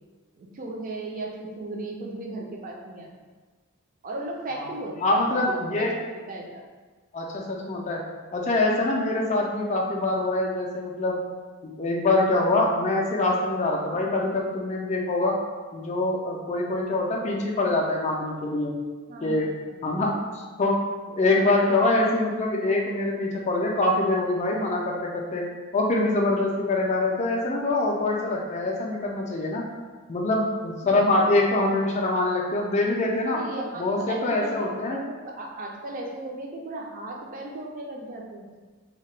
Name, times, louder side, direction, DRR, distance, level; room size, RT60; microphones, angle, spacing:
voice 1, 0.4-3.1 4.0-5.9 6.3-6.6 13.9-14.0 19.1-19.8 21.3-21.5 30.8-31.1 33.3-38.5, right 2 dB, 40° right, 0 dB, 0.4 m, -36 dB
voice 2, 5.0-5.9 7.1-8.0 8.3-11.2 11.8-15.3 15.7-18.7 19.2-19.5 19.8-20.7 21.1-25.4 25.7-29.6 30.1-33.4 33.8-35.0, left 2 dB, 30° left, -1 dB, 0.3 m, -24 dB
2.8 x 2.1 x 3.1 m, 1.4 s
head